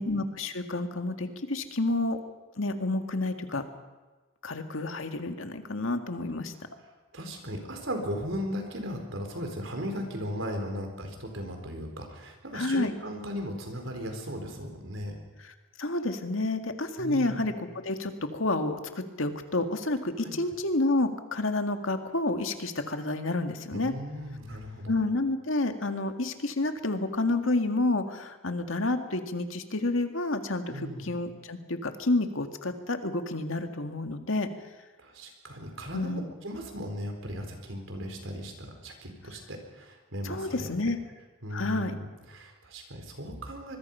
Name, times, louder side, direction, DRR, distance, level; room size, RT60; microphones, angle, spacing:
voice 1, 0.0-2.2 2.6-3.6 4.4-6.5 12.5-12.9 15.8-17.5 17.8-23.9 24.9-34.5 35.9-36.2 40.2-41.0 41.5-41.9, left 2 dB, 75° left, 6 dB, 1.9 m, -29 dB
voice 2, 7.1-15.2 17.0-17.5 20.2-20.4 23.7-25.0 30.7-31.1 35.0-40.7 41.4-43.8, equal, 70° right, 4 dB, 4.5 m, -37 dB
25.0 x 21.5 x 5.6 m, 1.3 s
head